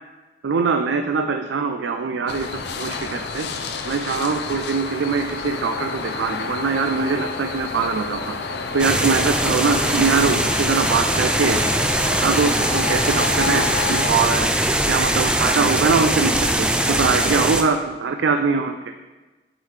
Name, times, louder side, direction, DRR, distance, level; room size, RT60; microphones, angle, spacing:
voice 1, 0.4-2.5 2.8-3.5 3.8-8.4 8.7-11.6 12.2-14.5 14.9-18.8, right 5 dB, 90° right, 6 dB, 0.4 m, -22 dB
sound 1, 2.3-14.1, left 4 dB, 70° left, 0.6 m, -30 dB
sound 2, 8.8-17.6, right 1 dB, 5° right, 0.4 m, -21 dB
8.1 x 7.4 x 3.2 m, 1.2 s
head